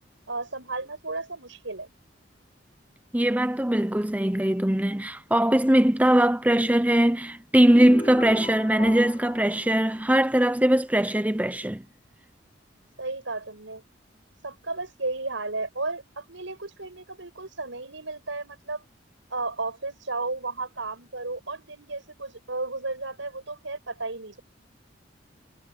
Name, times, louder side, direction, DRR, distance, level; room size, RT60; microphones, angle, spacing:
voice 1, 0.3-1.9 13.0-13.8 14.4-18.8 19.3-24.4, right 3 dB, 85° right, 6.2 m, -33 dB
voice 2, 3.1-11.8, right 1 dB, 10° right, 0.7 m, -21 dB
sound 1, 7.7-10.8, left 1 dB, 25° left, 6.7 m, -38 dB
head